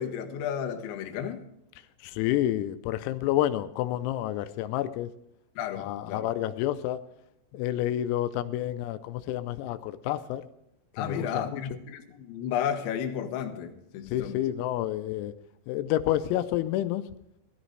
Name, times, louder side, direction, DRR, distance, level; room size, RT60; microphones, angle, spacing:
voice 1, 0.0-1.4 5.6-6.3 11.0-14.4, left 8 dB, 70° left, 4 dB, 3.3 m, -33 dB
voice 2, 2.0-5.1 5.8-7.0 7.5-10.4 11.0-11.6 14.1-15.3 15.7-17.1, left 13 dB, 90° left, 10 dB, 3.4 m, -29 dB
18.5 x 13.0 x 3.2 m, 0.80 s
omnidirectional pair, 6.0 m